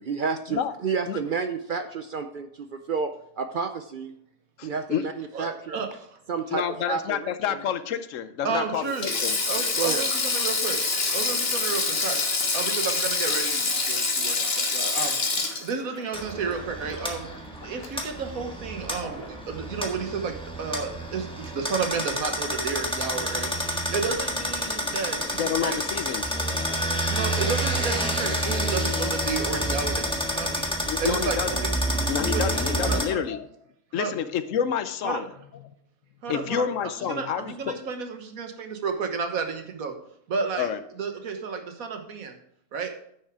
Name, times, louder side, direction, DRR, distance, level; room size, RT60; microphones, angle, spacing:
voice 1, 0.0-4.1 4.6-5.8 6.3-7.6 9.8-10.0, right 5 dB, 60° right, 8 dB, 0.5 m, -30 dB
voice 2, 4.6-5.0 6.5-9.4 25.4-26.3 30.9-31.7 32.1-33.5 33.9-35.3 36.3-37.7 40.5-40.8, left 8 dB, 70° left, 12 dB, 1.0 m, -29 dB
voice 3, 5.3-6.2 8.4-9.1 9.5-10.8 11.1-12.2 12.5-15.2 15.6-17.4 17.6-25.8 27.1-30.7 31.0-31.4 32.2-33.2 34.0-34.1 35.0-35.2 36.2-39.9 40.3-40.7 41.0-42.4 42.7-42.9, right 5 dB, 85° right, 5 dB, 1.7 m, -32 dB
Sink (filling or washing), 8.9-17.3 17.6-17.9 19.0-19.3, left 3 dB, 45° left, 1.6 m, -26 dB
sound 1, 16.1-33.1, equal, 5° left, 1.4 m, -29 dB
9.9 x 6.6 x 4.8 m, 0.71 s
omnidirectional pair, 1.4 m